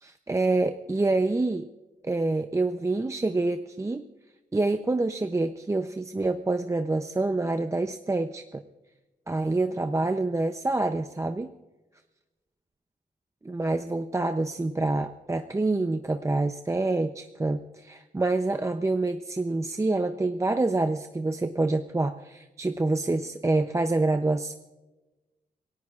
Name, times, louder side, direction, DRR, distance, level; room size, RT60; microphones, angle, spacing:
voice 1, 0.0-1.7 2.0-4.0 4.5-8.6 9.3-11.5 13.4-24.5, right 2 dB, 20° right, 7 dB, 0.6 m, -27 dB
27.5 x 18.0 x 2.4 m, 1.1 s
wide cardioid pair, 140°, 16 cm